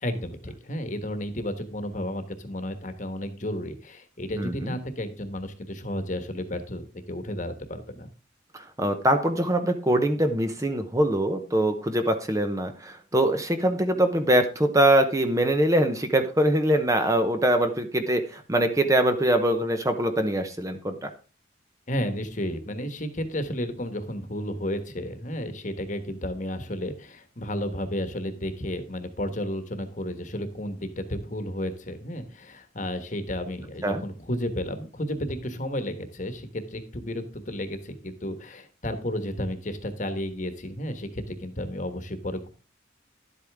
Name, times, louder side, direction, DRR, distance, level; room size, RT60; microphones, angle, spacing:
voice 1, 0.0-8.1 21.9-42.5, left 1 dB, 40° left, 9 dB, 1.3 m, -32 dB
voice 2, 8.5-21.1 33.8-34.0, right 1 dB, 15° right, 7 dB, 0.8 m, -23 dB
11.5 x 8.2 x 3.5 m, 0.36 s
head